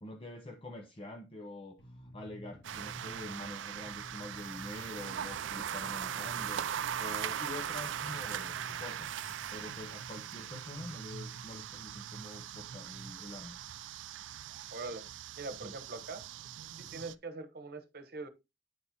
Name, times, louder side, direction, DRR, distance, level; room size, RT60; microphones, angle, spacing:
voice 1, 0.0-9.1 9.5-13.6 15.6-15.8, left 1 dB, 30° left, 0.8 m, -46 dB
sound 1, 1.8-9.8, left 1 dB, 80° left, 2.2 m, -53 dB
sound 2, 2.6-17.1, right 9 dB, 85° right, 0.4 m, -40 dB
voice 2, 14.7-15.1 15.4-16.2 16.8-18.3, right 3 dB, 55° right, 1.1 m, -42 dB
9.5 x 4.2 x 4.2 m
head